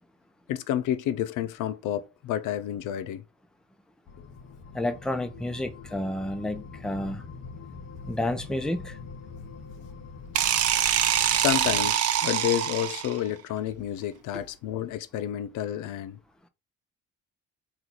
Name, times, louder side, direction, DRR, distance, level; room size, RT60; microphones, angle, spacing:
voice 1, 0.5-3.2 11.3-16.2, left 11 dB, 85° left, 0.5 m, -30 dB
sound 1, 4.1-12.0, left 4 dB, 60° left, 0.8 m, -43 dB
voice 2, 4.7-7.2 8.1-9.0, left 1 dB, ahead, 0.5 m, -30 dB
sound 2, 10.3-13.3, right 10 dB, 55° right, 0.5 m, -24 dB
3.1 x 2.4 x 3.8 m
cardioid pair, 90°, 30 cm